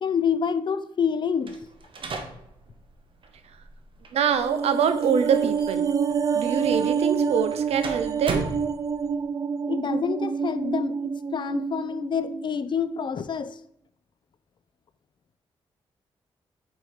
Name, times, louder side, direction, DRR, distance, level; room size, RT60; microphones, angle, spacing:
voice 1, 0.0-1.6 9.6-13.6, left 7 dB, 50° left, 0.5 m, -27 dB
sound 1, 1.4-9.2, right 3 dB, 55° right, 1.1 m, -38 dB
voice 2, 4.1-5.9 6.3-8.5, right 7 dB, 80° right, 0.7 m, -24 dB
sound 2, 4.3-12.7 13.0-13.2, right 6 dB, 35° right, 0.4 m, -27 dB
4.8 x 4.6 x 5.7 m
cardioid pair, 80°, 10 cm